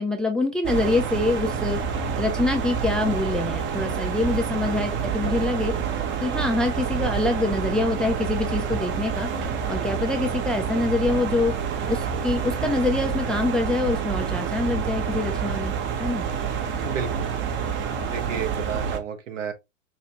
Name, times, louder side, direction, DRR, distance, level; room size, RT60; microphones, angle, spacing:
voice 1, 0.0-1.8 2.2-5.7 6.2-9.3 9.7-11.5 11.9-15.7 16.0-16.2, left 2 dB, ahead, 0.4 m, -25 dB
sound 1, 0.6-19.0, right 6 dB, 30° right, 0.8 m, -28 dB
voice 2, 16.8-17.3 18.1-19.5, right 7 dB, 70° right, 1.4 m, -31 dB
5.2 x 2.4 x 2.9 m
hypercardioid pair, 100°, 39 cm